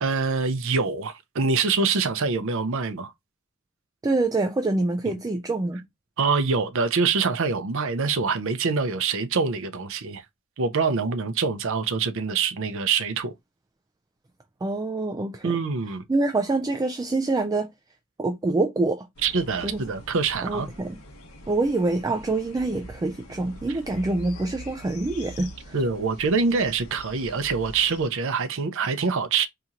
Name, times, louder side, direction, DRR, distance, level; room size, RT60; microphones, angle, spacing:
voice 1, 0.0-3.1 5.1-5.2 6.2-10.2 10.6-13.3 15.4-16.0 19.2-20.7 25.7-29.5, right 4 dB, 65° right, 0.6 m, -25 dB
voice 2, 4.0-5.8 14.6-15.6 16.1-17.7 18.2-19.1 19.6-19.8 20.4-21.0 21.5-25.8, right 2 dB, 15° right, 0.3 m, -26 dB
sound 1, 19.2-28.1, equal, 80° left, 0.9 m, -44 dB
4.2 x 2.8 x 2.4 m
head